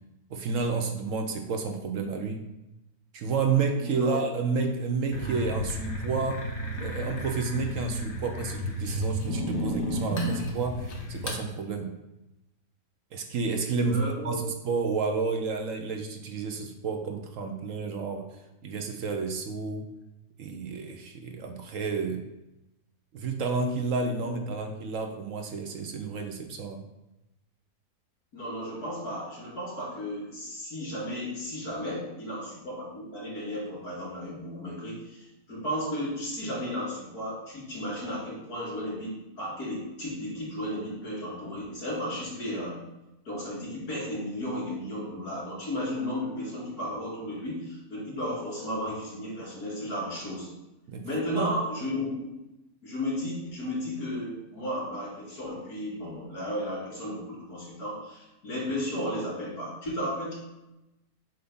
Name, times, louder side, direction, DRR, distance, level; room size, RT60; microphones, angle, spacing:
voice 1, 0.3-2.5 3.1-6.4 6.8-11.9 13.1-19.8 20.4-22.2 23.1-26.8 50.9-51.1 51.3-51.5, right 4 dB, 65° right, 4 dB, 1.0 m, -30 dB
voice 2, 3.8-4.2 13.8-14.4 24.1-24.4 28.3-42.8 43.2-50.5 51.0-52.4 52.8-60.3, equal, 75° left, -6 dB, 3.1 m, -34 dB
sound 1, 5.1-11.4, equal, 40° left, 1.1 m, -32 dB
7.7 x 2.7 x 5.4 m, 0.95 s
omnidirectional pair, 1.6 m